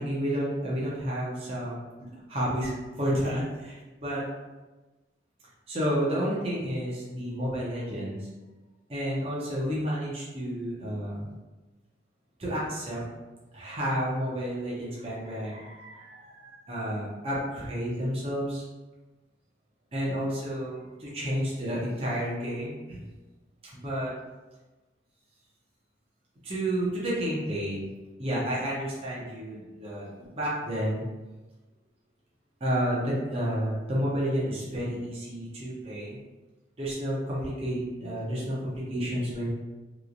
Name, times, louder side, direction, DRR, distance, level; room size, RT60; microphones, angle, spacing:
voice 1, 0.0-1.8 2.3-2.7 3.0-4.2 5.7-8.2 8.9-11.3 12.4-13.0 13.5-18.6 19.9-23.0 23.7-24.1 26.4-27.8 28.2-30.1 30.3-31.0 32.6-36.2 36.8-39.5, equal, 35° right, -6 dB, 0.8 m, -30 dB
3.1 x 3.0 x 2.6 m, 1.2 s
head